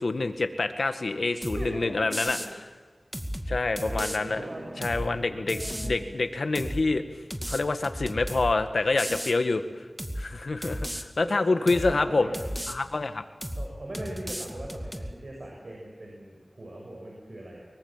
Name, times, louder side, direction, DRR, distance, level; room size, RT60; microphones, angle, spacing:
voice 1, 0.0-2.4 3.5-4.4 4.8-7.0 7.5-9.9 10.2-12.3 12.7-13.2, left 3 dB, 90° left, 8 dB, 1.8 m, -27 dB
sound 1, 1.4-1.7 2.1-2.5 3.1-4.2 4.8-5.1 5.5-6.0 6.5-6.8 7.3-8.5 9.0-9.4 10.0-10.3 10.6-11.0 11.7-11.9 12.3-12.8 13.4-13.7 13.9-15.1, equal, 10° right, 2.3 m, -34 dB
voice 2, 1.6-2.2 3.8-5.0 5.5-6.1 11.2-12.7 13.6-17.7, right 1 dB, 70° right, -1 dB, 6.9 m, -40 dB
sound 2, 4.2-9.5, right 1 dB, 50° right, 3.7 m, -48 dB
24.5 x 23.5 x 7.5 m, 1.4 s
wide cardioid pair, 60°, 0 cm